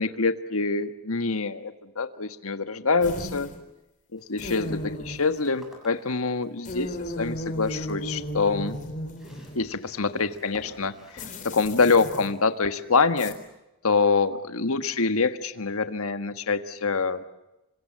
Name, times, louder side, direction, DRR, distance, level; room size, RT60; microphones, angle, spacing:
voice 1, 0.0-3.5 4.1-8.8 9.5-13.3 13.8-17.2, left 4 dB, 70° left, 10 dB, 1.5 m, -25 dB
sound 1, 3.0-3.6 4.4-5.3 6.6-9.6 11.2-12.3 13.2-13.3, left 1 dB, 35° left, 4.1 m, -35 dB
sound 2, 4.2-11.4, left 1 dB, ahead, 7.5 m, -54 dB
28.0 x 25.5 x 7.5 m, 0.96 s
head